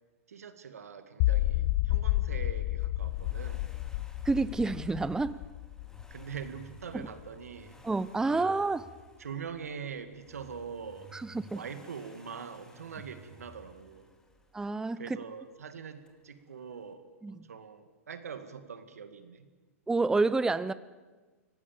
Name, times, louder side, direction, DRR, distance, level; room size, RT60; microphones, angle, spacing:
voice 1, 0.3-3.7 6.1-7.8 8.2-8.7 9.2-11.1 11.5-14.1 15.0-19.5, right 6 dB, 85° right, 2.1 m, -43 dB
Cinematic Bass Boom, 1.2-7.3, left 17 dB, 50° left, 0.8 m, -31 dB
Accelerating revving vroom, 2.8-14.8 16.1-16.2, equal, 10° left, 2.5 m, -55 dB
voice 2, 4.2-5.4 7.8-8.8 11.1-11.2 11.5-11.6 14.5-15.0 17.2-17.3 19.9-20.7, right 3 dB, 10° right, 0.6 m, -28 dB
25.5 x 18.5 x 7.2 m
hypercardioid pair, 115°, 8 cm